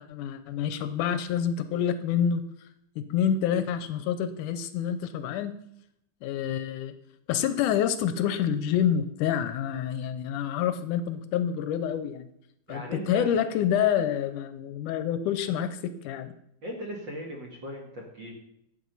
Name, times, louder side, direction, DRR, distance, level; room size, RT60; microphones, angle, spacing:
voice 1, 0.0-2.4 3.0-5.6 6.2-6.9 7.3-12.3 12.7-16.3, left 9 dB, 80° left, 11 dB, 2.1 m, -27 dB
voice 2, 12.7-13.4 14.1-14.2 16.6-18.3, equal, 40° right, 0 dB, 2.3 m, -38 dB
11.0 x 8.3 x 5.4 m, 0.76 s
omnidirectional pair, 3.8 m